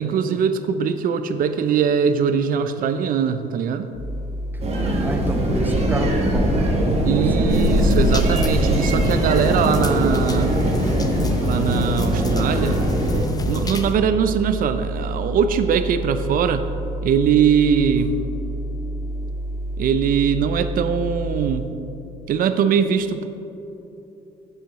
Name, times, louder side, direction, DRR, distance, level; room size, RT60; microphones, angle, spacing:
voice 1, 0.0-3.9 7.0-10.6 11.4-12.8 13.5-16.6 17.0-18.2 19.8-21.7 22.3-23.3, right 7 dB, 55° right, 10 dB, 0.4 m, -21 dB
sound 1, 3.9-21.6, right 1 dB, 75° left, 1.8 m, -29 dB
sound 2, 4.6-13.3, right 1 dB, 40° right, 1.4 m, -21 dB
voice 2, 5.0-6.7 7.0-7.7, right 1 dB, 10° right, 3 dB, 0.9 m, -29 dB
sound 3, 7.5-13.9, left 2 dB, 20° left, 0.6 m, -29 dB
10.0 x 7.2 x 3.0 m, 3.0 s
cardioid pair, 110°, 17 cm